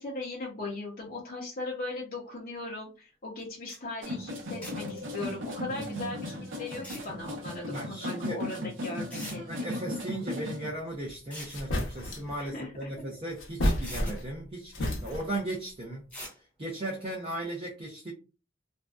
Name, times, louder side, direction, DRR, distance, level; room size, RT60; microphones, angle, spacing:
voice 1, 0.0-9.7 12.4-12.9, left 2 dB, 45° left, 0.7 m, -38 dB
sound 1, 3.4-3.5 3.7-3.8 4.6-5.0 6.7-7.1 8.4-8.5 9.1-9.4 11.1-11.6 13.2-13.3 13.8-14.2 16.1-16.4, equal, 5° left, 0.8 m, -43 dB
sound 2, 4.0-10.7, left 1 dB, 70° right, 0.7 m, -37 dB
voice 2, 5.7-6.2 7.7-8.4 9.5-16.1 16.6-18.1, right 1 dB, 30° right, 0.5 m, -37 dB
sound 3, 11.1-11.2 11.5-12.4 13.4-14.4 14.7-15.4, equal, 85° left, 0.7 m, -30 dB
2.5 x 2.2 x 2.3 m
head